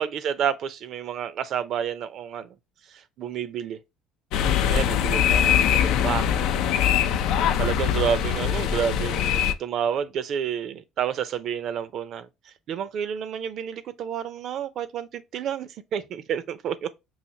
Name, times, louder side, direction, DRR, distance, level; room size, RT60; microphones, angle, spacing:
voice 1, 0.0-2.5 2.9-3.8 4.7-6.5 7.6-12.3 12.7-16.9, right 8 dB, 60° right, 0.5 m, -30 dB
sound 1, 4.3-9.5, left 9 dB, 75° left, 0.4 m, -22 dB
5.6 x 2.5 x 2.7 m
supercardioid pair, 90°, 0 cm